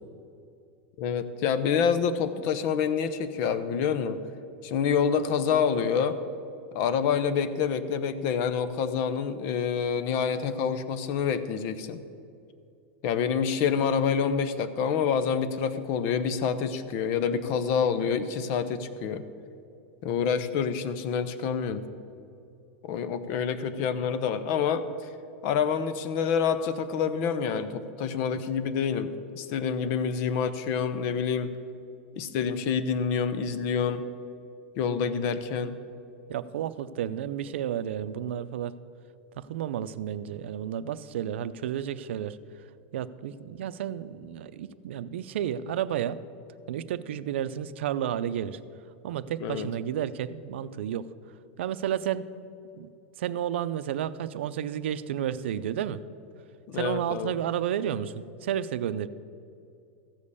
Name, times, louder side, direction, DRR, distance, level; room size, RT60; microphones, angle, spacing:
voice 1, 1.0-4.2 4.6-6.2 6.7-12.0 13.0-19.2 20.0-21.8 22.8-25.1 25.4-31.5 32.2-34.1 34.8-35.7 49.4-49.7 56.7-57.4, left 7 dB, 40° left, 12 dB, 0.7 m, -27 dB
voice 2, 36.3-38.8 39.4-42.4 42.9-46.2 46.7-48.6 49.0-51.1 51.6-52.3 52.8-52.9 53.2-56.0 56.7-59.1, right 10 dB, 90° right, 14 dB, 0.5 m, -31 dB
14.5 x 5.3 x 8.3 m, 2.5 s
supercardioid pair, 170°, 6 cm